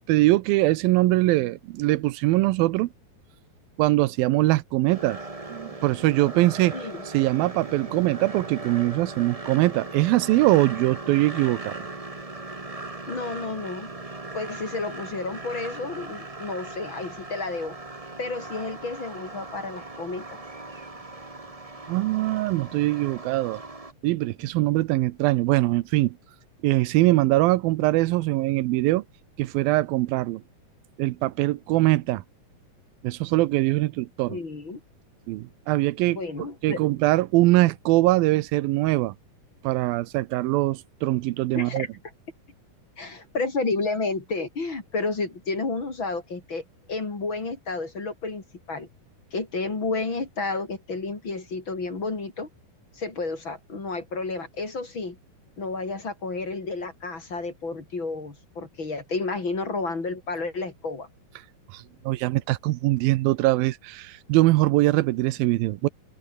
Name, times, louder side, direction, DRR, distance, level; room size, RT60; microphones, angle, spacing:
voice 1, 0.0-2.9 3.8-5.2 5.5-6.8 7.1-11.8 21.9-23.6 24.0-26.2 26.6-29.0 29.4-30.4 31.0-32.2 33.0-34.4 35.3-36.2 36.6-39.1 39.6-41.9 61.7-65.9, right 18 dB, 85° right, 2.5 m, -22 dB
sound 1, 4.9-23.9, right 2 dB, 40° right, 0.5 m, -39 dB
voice 2, 6.7-7.0 13.1-13.9 14.3-17.8 18.2-20.3 34.3-34.8 36.1-36.8 41.5-41.9 43.0-48.9 49.3-52.5 52.9-55.2 55.6-61.1, left 3 dB, 35° left, 4.3 m, -31 dB
open air
omnidirectional pair, 4.2 m